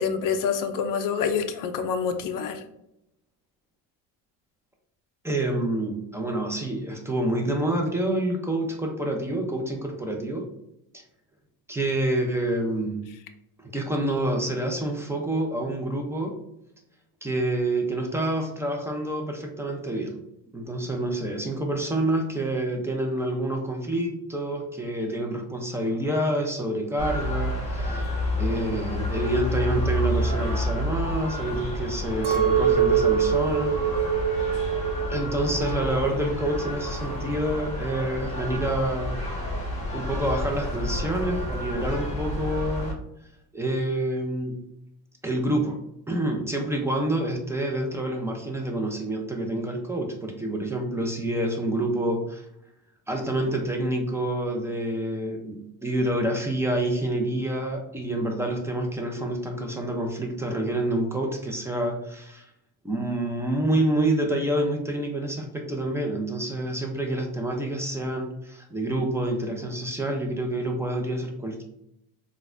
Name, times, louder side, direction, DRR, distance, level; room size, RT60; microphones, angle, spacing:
voice 1, 0.0-2.6, left 6 dB, 45° left, 8 dB, 0.6 m, -27 dB
voice 2, 5.2-10.5 11.7-13.0 13.6-16.4 17.2-20.2 20.5-28.1 28.4-33.8 35.1-39.2 39.6-43.0 43.5-44.6 45.2-45.8 46.1-52.4 53.1-62.4 62.8-71.6, right 1 dB, 5° right, 1 dB, 0.6 m, -27 dB
sound 1, 27.0-42.9, left 1 dB, 15° left, 1.3 m, -30 dB
Chink clink, 32.2-36.6 36.9-37.7, right 8 dB, 75° right, 1.0 m, -25 dB
3.9 x 2.4 x 2.6 m, 0.81 s
supercardioid pair, 95°, 46 cm